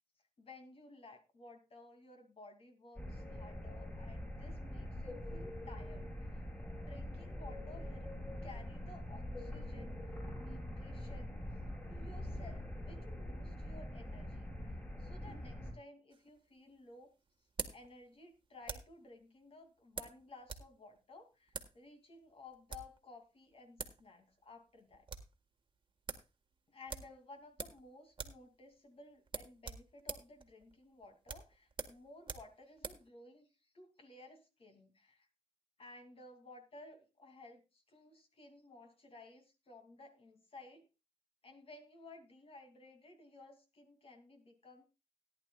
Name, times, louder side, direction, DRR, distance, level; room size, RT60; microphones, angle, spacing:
voice 1, 0.4-6.4 6.8-8.1 8.4-11.4 11.9-17.1 17.7-25.1 26.7-33.5 33.7-35.3 35.8-40.9 41.4-44.8, left 2 dB, 45° left, 5 dB, 2.6 m, -56 dB
sound 1, 3.0-15.7, left 1 dB, 15° left, 5.8 m, -44 dB
sound 2, 16.1-19.0 20.0-20.7 21.0-21.1 21.5-21.8 22.5-23.0 23.5-23.6 23.8-24.0 24.3-24.4 24.7-25.3 25.7-25.8 26.1-26.3 26.9-27.9 28.1-28.5 28.7-28.9 29.3-33.1, right 4 dB, 40° right, 1.5 m, -45 dB
18.0 x 10.5 x 2.3 m, 0.27 s
cardioid pair, 95°, 13 cm